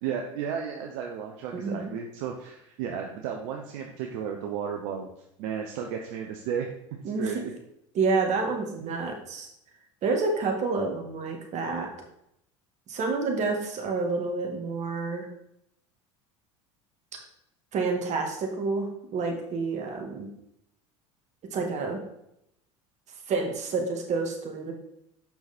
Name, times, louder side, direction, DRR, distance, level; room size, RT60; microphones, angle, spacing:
voice 1, 0.0-5.1 5.4-6.7 7.2-7.5 8.8-9.0, right 7 dB, 65° right, 2 dB, 1.0 m, -33 dB
voice 2, 1.5-1.9 7.0-7.5 7.9-9.5 10.0-11.9 12.9-15.3 17.7-20.3 21.5-22.0 23.3-24.7, right 4 dB, 45° right, 2 dB, 2.2 m, -29 dB
8.1 x 5.9 x 4.4 m, 0.78 s
hypercardioid pair, 80°, 16 cm